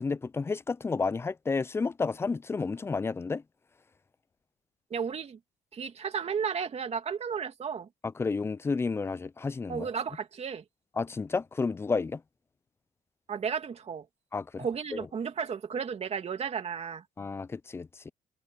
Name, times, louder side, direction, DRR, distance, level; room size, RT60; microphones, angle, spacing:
voice 1, 0.0-3.4 8.2-9.9 11.0-12.2 14.3-14.6 14.9-15.1 17.2-18.1, left 4 dB, 15° left, 0.3 m, -31 dB
voice 2, 4.9-5.4 5.7-7.9 9.7-10.6 13.3-14.1 14.6-17.0, right 6 dB, 40° right, 2.4 m, -33 dB
cardioid pair, 110°, 17 cm